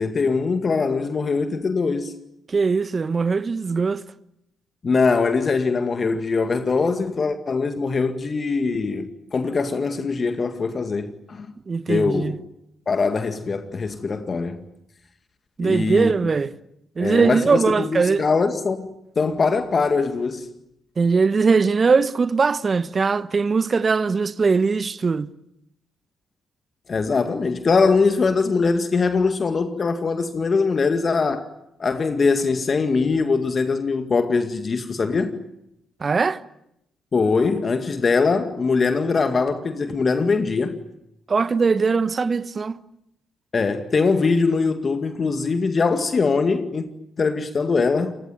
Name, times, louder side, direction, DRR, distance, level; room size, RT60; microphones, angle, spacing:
voice 1, 0.0-2.1 4.8-11.5 11.9-12.3 12.9-14.6 15.6-16.1 17.0-18.9 19.2-20.5 26.9-31.5 31.8-35.4 37.1-40.8 43.5-46.9 47.2-48.1, left 4 dB, 45° left, 2.1 m, -22 dB
voice 2, 2.5-4.0 11.7-12.4 15.6-16.5 17.0-18.2 21.0-25.3 36.0-36.4 41.3-42.8, right 4 dB, 40° right, 1.2 m, -20 dB
28.5 x 20.0 x 9.3 m
hypercardioid pair, 45°, 0 cm